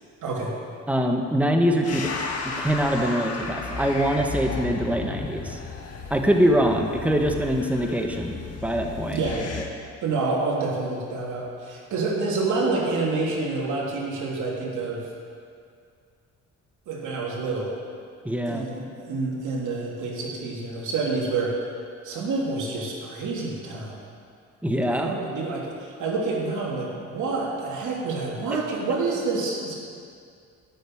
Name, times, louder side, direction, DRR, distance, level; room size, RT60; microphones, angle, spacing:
voice 1, 0.2-0.5 9.1-9.5 10.0-15.1 16.9-17.7 18.5-21.6 22.0-24.0 24.9-29.7, right 3 dB, 75° right, -4 dB, 3.3 m, -28 dB
voice 2, 0.9-2.1 2.4-5.6 6.1-9.2 18.2-18.7 24.6-25.1, equal, 5° right, 3 dB, 1.5 m, -23 dB
sound 1, 1.8-9.7, left 4 dB, 55° left, 1.7 m, -34 dB
13.0 x 6.6 x 9.2 m, 2.3 s
cardioid pair, 90°, 30 cm